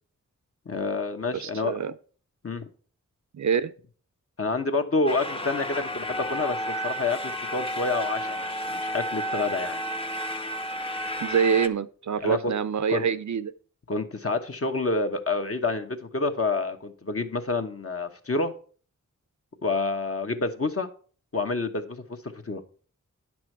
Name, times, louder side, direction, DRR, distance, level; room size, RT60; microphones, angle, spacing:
voice 1, 0.6-1.7 2.4-2.6 4.4-9.8 12.2-12.5 12.9-13.1 13.9-18.5 19.6-20.9 21.3-22.6, left 3 dB, 45° left, 1.2 m, -28 dB
voice 2, 1.3-1.9 3.3-3.7 11.2-13.5, right 7 dB, 65° right, 0.5 m, -25 dB
sound 1, 5.1-11.7, equal, 15° left, 0.7 m, -31 dB
10.0 x 6.1 x 4.6 m
wide cardioid pair, 60°, 32 cm